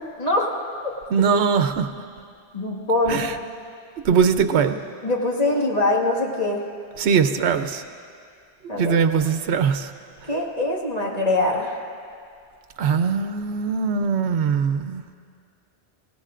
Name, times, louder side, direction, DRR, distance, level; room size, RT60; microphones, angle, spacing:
voice 1, 0.2-0.5 2.5-3.2 5.0-6.6 8.7-9.0 10.2-11.9, left 2 dB, 40° left, -2 dB, 1.9 m, -23 dB
voice 2, 1.1-2.1 3.1-3.4 4.0-4.8 7.0-7.8 8.7-9.9 10.2-10.3 12.8-15.0, right 6 dB, 80° right, 8 dB, 1.0 m, -21 dB
26.5 x 16.5 x 2.5 m, 2.3 s
omnidirectional pair, 1.1 m